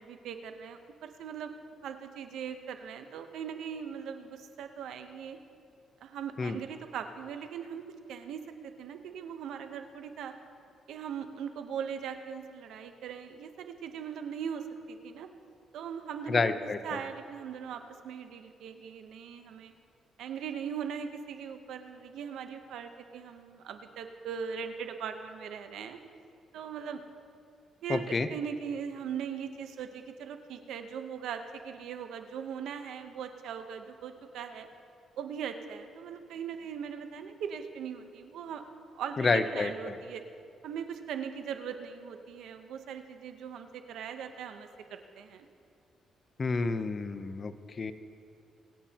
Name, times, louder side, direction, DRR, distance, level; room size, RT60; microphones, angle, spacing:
voice 1, 0.0-1.5 1.8-5.4 6.0-7.8 8.1-10.3 10.9-15.3 15.7-19.7 20.2-26.0 26.5-27.0 27.8-34.7 35.2-38.6 38.9-40.2 40.6-45.5, right 7 dB, 80° right, 7 dB, 0.9 m, -40 dB
voice 2, 16.3-16.8 27.9-28.3 39.2-40.0 46.4-47.9, left 4 dB, 35° left, 10 dB, 0.7 m, -29 dB
23.5 x 9.2 x 2.9 m, 2.5 s
cardioid pair, 90°, 0 cm